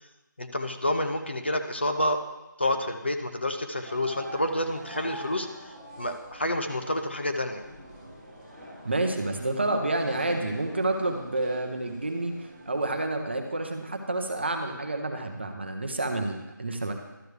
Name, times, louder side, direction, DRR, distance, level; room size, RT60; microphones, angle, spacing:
voice 1, 0.4-2.2 2.6-7.6, left 1 dB, 35° left, 6 dB, 0.5 m, -29 dB
sound 1, 3.8-13.0, right 1 dB, 10° left, 2.4 m, -45 dB
voice 2, 8.8-16.9, right 2 dB, 35° right, 5 dB, 0.7 m, -29 dB
12.0 x 6.4 x 3.3 m, 1.0 s
figure-of-eight pair, 180°, 11 cm